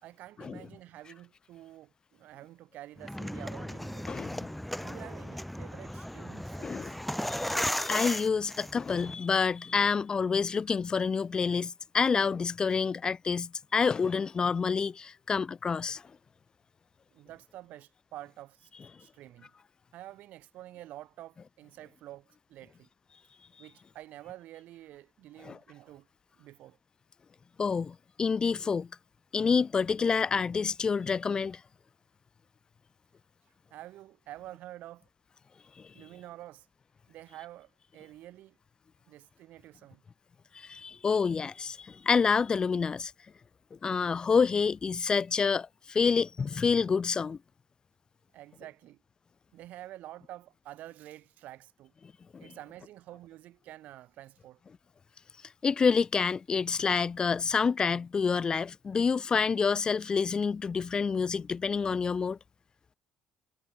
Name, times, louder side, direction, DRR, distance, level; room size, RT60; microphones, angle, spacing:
voice 1, 0.0-4.1 4.8-7.0 17.1-18.7 19.0-19.5 19.9-22.9 23.6-26.1 26.4-26.8 33.7-35.1 35.9-36.7 37.1-38.6 39.1-40.0 48.3-49.0 49.5-51.9 52.4-54.6, right 14 dB, 70° right, 4.2 m, -48 dB
sound 1, 3.0-9.1, equal, 5° left, 1.1 m, -36 dB
voice 2, 4.1-4.5 6.6-6.9 7.3-16.0 25.4-25.6 27.6-28.9 29.3-31.6 35.8-35.9 40.5-43.1 43.8-47.4 52.3-52.5 55.6-62.4, left 5 dB, 30° left, 1.1 m, -28 dB
cardioid pair, 115°, 3 cm